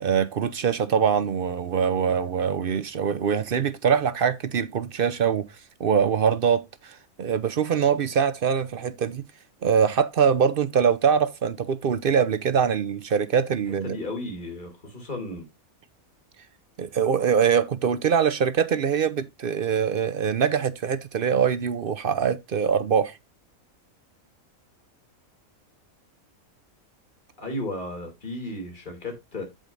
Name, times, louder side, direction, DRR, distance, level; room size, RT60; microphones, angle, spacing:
voice 1, 0.0-5.5 5.8-9.2 9.6-14.0 16.8-23.2, right 7 dB, 55° right, 0.6 m, -23 dB
voice 2, 13.8-15.5 27.4-29.4, left 1 dB, 35° left, 3.0 m, -34 dB
15.0 x 5.1 x 2.6 m
omnidirectional pair, 1.5 m